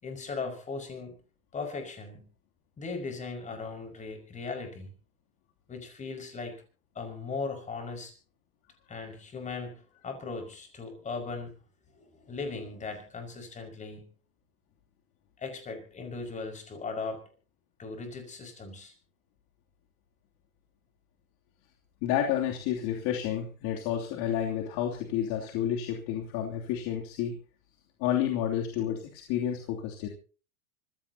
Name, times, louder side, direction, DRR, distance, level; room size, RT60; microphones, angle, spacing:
voice 1, 0.0-1.2 1.5-2.3 2.8-4.9 5.7-6.6 7.0-8.1 8.9-11.5 12.0-14.1 15.4-17.2 17.8-18.9, left 4 dB, 15° left, 5 dB, 5.6 m, -38 dB
voice 2, 22.0-27.3 28.0-30.1, left 10 dB, 40° left, 1 dB, 3.0 m, -30 dB
25.0 x 16.0 x 2.9 m, 0.38 s
hypercardioid pair, 135°, 45 cm